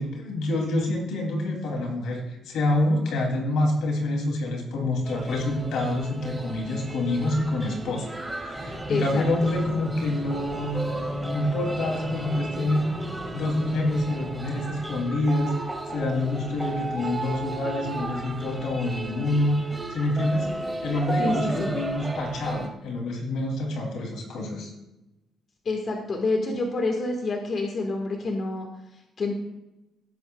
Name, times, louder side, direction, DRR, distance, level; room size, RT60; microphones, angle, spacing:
voice 1, 0.0-8.1 8.4-12.9 13.3-15.5 15.9-19.6 19.9-20.5 20.8-24.7, left 1 dB, 80° left, 1 dB, 2.8 m, -27 dB
sound 1, 5.0-22.7, right 2 dB, 15° right, 1.8 m, -35 dB
sound 2, 8.5-15.0, equal, 5° left, 2.4 m, -40 dB
voice 2, 8.9-9.2 21.2-21.7 25.6-28.7 29.2-29.3, left 2 dB, 50° left, 1 dB, 1.6 m, -27 dB
17.0 x 8.2 x 2.3 m, 0.96 s
cardioid pair, 90°, 0 cm